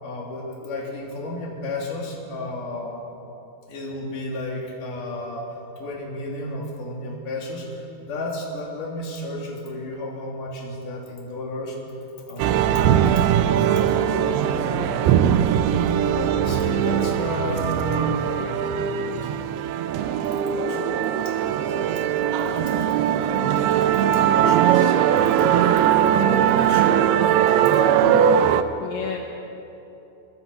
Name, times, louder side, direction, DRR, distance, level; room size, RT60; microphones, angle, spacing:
voice 1, 0.0-3.0 3.7-11.8 12.3-13.0 14.3-14.9 16.0-19.6 20.2-21.5 21.8-22.1 22.5-22.9 23.9-28.3, left 1 dB, 45° left, -2 dB, 4.4 m, -33 dB
sound 1, 12.4-28.6, right 9 dB, 80° right, 2.3 m, -20 dB
voice 2, 13.5-15.1 15.8-15.9 28.0-28.4 28.8-29.2, left 8 dB, 75° left, 1 dB, 3.6 m, -35 dB
27.0 x 20.5 x 5.6 m, 3.0 s
omnidirectional pair, 5.5 m